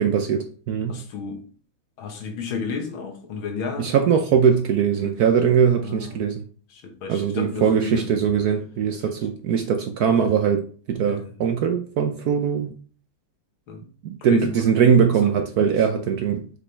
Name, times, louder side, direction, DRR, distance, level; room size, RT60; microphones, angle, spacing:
voice 1, 0.0-1.0 3.8-6.4 7.1-12.7 14.0-16.4, right 7 dB, 70° right, 0.9 m, -21 dB
voice 2, 0.9-1.4 2.0-3.9 5.0-5.2 5.8-6.2 6.7-8.1 11.0-11.3 13.7-13.8 14.3-14.7 15.2-15.3 15.9-16.1, left 5 dB, 85° left, 2.0 m, -32 dB
6.4 x 5.0 x 3.3 m
omnidirectional pair, 2.1 m